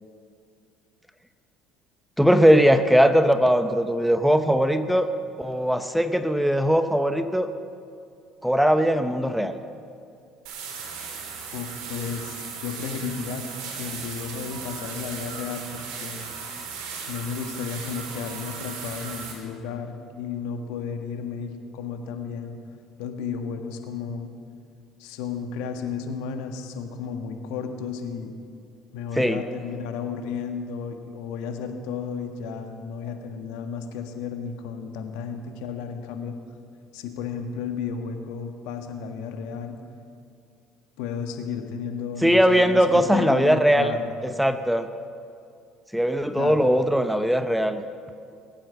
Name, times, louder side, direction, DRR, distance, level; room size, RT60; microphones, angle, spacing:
voice 1, 2.2-5.1 5.4-7.5 8.4-9.6 29.2-29.4 42.2-43.9 44.4-44.9 45.9-47.8, equal, ahead, 10 dB, 0.7 m, -20 dB
sound 1, 10.4-19.3, right 5 dB, 80° right, 3.4 m, -36 dB
voice 2, 11.5-16.2 17.1-22.6 23.0-24.3 25.0-28.3 28.9-36.4 36.9-39.8 41.0-44.1 46.4-46.7, left 6 dB, 85° left, 6 dB, 1.5 m, -33 dB
20.5 x 8.9 x 7.0 m, 2.4 s
supercardioid pair, 100°, 0 cm